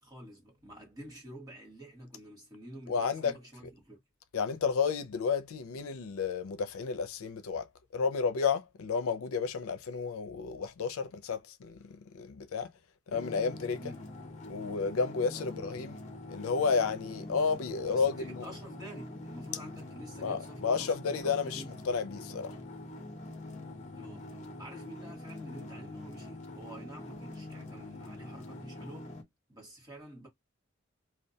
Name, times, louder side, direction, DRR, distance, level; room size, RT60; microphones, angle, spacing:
voice 1, 0.0-4.0 13.8-14.0 15.3-15.8 17.9-21.7 23.9-29.1 29.5-30.3, equal, 20° right, 1.2 m, -48 dB
voice 2, 2.9-3.4 4.3-12.7 13.1-13.8 14.5-16.0 16.3-18.5 20.2-22.6, left 5 dB, 90° left, 0.4 m, -32 dB
sound 1, 13.1-29.2, left 1 dB, 35° left, 0.7 m, -45 dB
2.2 x 2.2 x 2.7 m
head